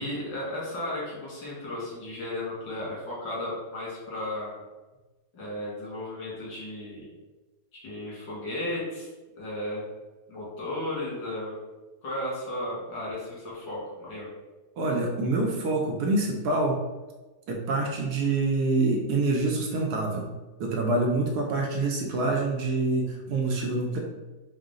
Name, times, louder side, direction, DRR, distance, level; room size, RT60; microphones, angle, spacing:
voice 1, 0.0-4.6 5.3-7.1 7.7-9.1 9.4-9.8 10.3-11.5 12.0-14.3, left 1 dB, 85° left, -6 dB, 2.3 m, -34 dB
voice 2, 14.8-16.8 17.5-20.3 20.6-24.0, right 2 dB, 70° right, 1 dB, 1.1 m, -26 dB
4.7 x 2.1 x 3.7 m, 1.1 s
omnidirectional pair, 1.9 m